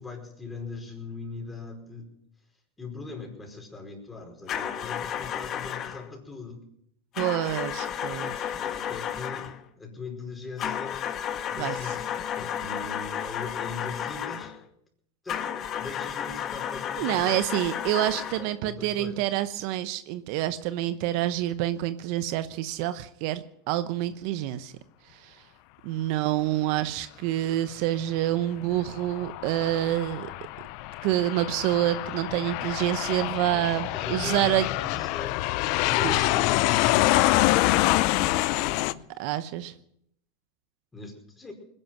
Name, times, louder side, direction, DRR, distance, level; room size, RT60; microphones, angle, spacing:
voice 1, 0.0-2.1 2.8-6.6 8.1-11.0 11.5-14.5 15.2-15.5 15.8-17.3 18.4-19.2 33.5-35.4 35.8-39.1 40.9-41.5, left 4 dB, 15° left, 2 dB, 5.0 m, -40 dB
sound 1, 4.5-6.1 7.1-9.6 10.6-14.6 15.3-18.5, left 9 dB, 40° left, 1.4 m, -33 dB
voice 2, 7.2-8.3 11.6-11.7 17.0-24.7 25.1-25.4 25.8-30.3 31.0-34.7 36.0-36.2 39.2-39.7, right 14 dB, 55° right, 12 dB, 0.9 m, -27 dB
Aircraft, 28.7-38.9, left 19 dB, 55° left, 0.6 m, -26 dB
20.5 x 11.0 x 6.1 m, 0.73 s
hypercardioid pair, 110°, 0 cm